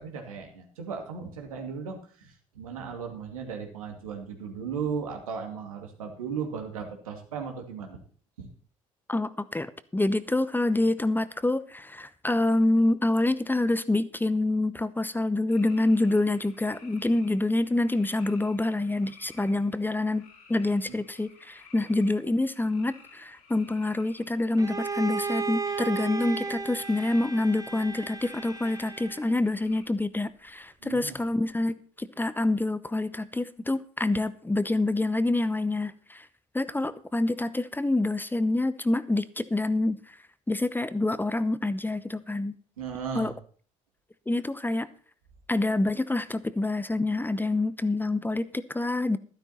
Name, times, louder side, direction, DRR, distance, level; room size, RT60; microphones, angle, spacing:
voice 1, 0.0-8.0 8.4-8.5 20.9-21.0 30.8-31.2 42.8-43.3, right 6 dB, 85° right, 2.3 m, -36 dB
voice 2, 9.1-20.2 20.5-36.3 36.5-40.0 40.5-42.5 43.1-43.3 44.3-44.9 45.5-49.2, left 2 dB, 10° left, 0.9 m, -27 dB
sound 1, 15.5-29.8, left 5 dB, 75° left, 4.6 m, -54 dB
Bowed string instrument, 24.6-29.4, right 4 dB, 20° right, 1.2 m, -34 dB
12.5 x 11.5 x 4.3 m
hypercardioid pair, 55°, 17 cm